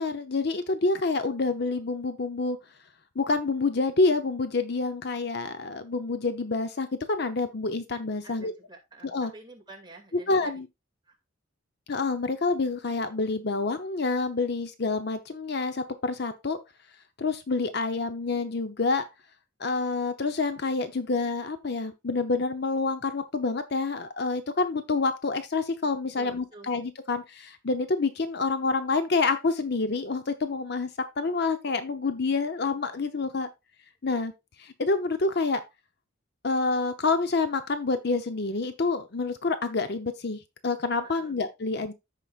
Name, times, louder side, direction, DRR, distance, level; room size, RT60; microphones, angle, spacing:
voice 1, 0.0-2.6 3.2-8.5 9.0-9.3 10.3-10.7 11.9-16.6 17.2-19.1 19.6-33.5 34.0-34.3 34.6-35.6 36.4-41.9, left 3 dB, 50° left, 0.7 m, -28 dB
voice 2, 8.2-10.6 11.1-11.2 26.2-26.7 41.0-41.4, right 2 dB, 20° right, 2.2 m, -48 dB
14.0 x 4.9 x 2.4 m
head